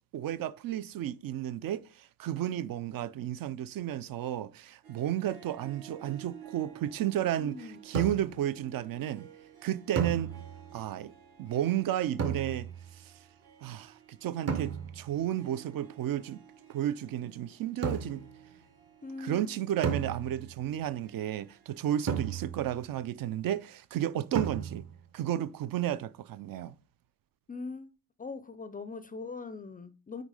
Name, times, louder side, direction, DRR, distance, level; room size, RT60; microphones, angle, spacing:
voice 1, 0.1-9.3 9.6-10.3 10.7-11.1 11.4-13.1 13.6-16.4 16.7-18.2 19.2-24.8 25.1-26.7, right 11 dB, 60° right, 0.5 m, -33 dB
Harp, 4.8-22.4, right 8 dB, 80° right, 2.8 m, -55 dB
voice 2, 7.4-7.8 19.0-19.6 27.5-27.9 28.2-30.2, left 4 dB, 25° left, 0.3 m, -41 dB
sound 1, 7.9-8.5 10.0-10.8 12.2-13.0 14.5-15.2 17.8-18.4 19.8-20.7 22.1-22.9 24.3-25.0, right 6 dB, 40° right, 1.1 m, -34 dB
9.2 x 3.6 x 4.8 m
cardioid pair, 165°, 38 cm